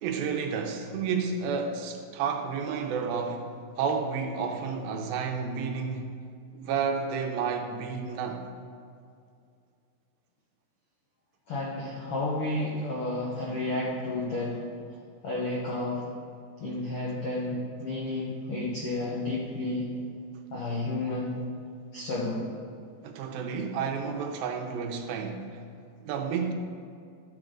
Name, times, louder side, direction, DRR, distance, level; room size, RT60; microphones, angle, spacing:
voice 1, 0.0-6.2 6.5-8.5 23.0-25.6 26.0-26.5, right 5 dB, 80° right, 2.4 m, -31 dB
voice 2, 11.5-14.6 15.2-16.1 16.6-19.9 20.5-21.4 21.9-22.4, left 2 dB, 75° left, 1.3 m, -31 dB
13.0 x 7.8 x 3.7 m
omnidirectional pair, 4.4 m